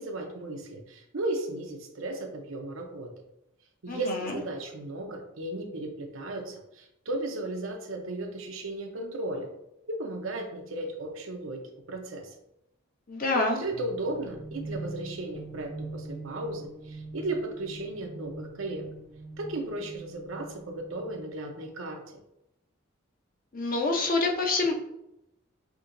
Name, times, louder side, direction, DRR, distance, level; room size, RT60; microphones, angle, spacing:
voice 1, 0.0-3.1 3.8-9.5 9.9-11.6 11.9-12.4 13.3-18.9 19.4-22.2, right 2 dB, 80° right, 3 dB, 0.7 m, -35 dB
voice 2, 3.9-4.3 13.1-13.6 23.5-24.7, left 3 dB, 45° left, 2 dB, 0.7 m, -26 dB
sound 1, 13.7-21.5, right 2 dB, 35° right, 0.5 m, -43 dB
6.1 x 2.8 x 2.6 m, 0.84 s
head